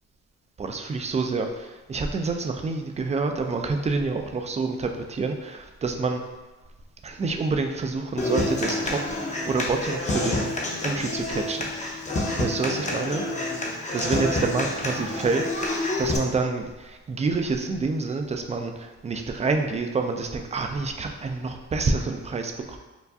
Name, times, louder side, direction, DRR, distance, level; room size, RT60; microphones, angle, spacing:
voice 1, 0.6-6.2 7.0-10.4 10.8-11.7 12.4-13.2 13.9-22.8, right 4 dB, 25° right, 4 dB, 0.4 m, -28 dB
Human voice / Acoustic guitar, 8.2-16.2, left 2 dB, 25° left, 0.6 m, -28 dB
4.5 x 2.3 x 2.6 m, 1.2 s
cardioid pair, 90°, 30 cm